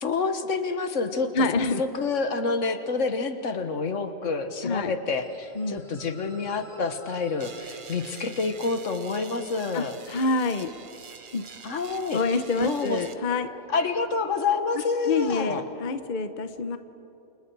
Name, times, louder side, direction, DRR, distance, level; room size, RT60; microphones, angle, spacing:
voice 1, 0.0-10.0 11.6-12.2 12.6-13.0 13.7-15.6, left 4 dB, 70° left, 8 dB, 1.7 m, -28 dB
voice 2, 1.3-1.8 4.6-4.9 5.6-5.8 9.7-10.7 11.3-11.4 12.1-13.5 15.1-16.8, left 3 dB, 40° left, 10 dB, 0.9 m, -27 dB
sound 1, 5.1-14.7, equal, ahead, 6.9 m, -56 dB
sound 2, 7.4-13.2, right 5 dB, 45° right, 1.1 m, -45 dB
29.0 x 27.5 x 4.7 m, 3.0 s
omnidirectional pair, 1.4 m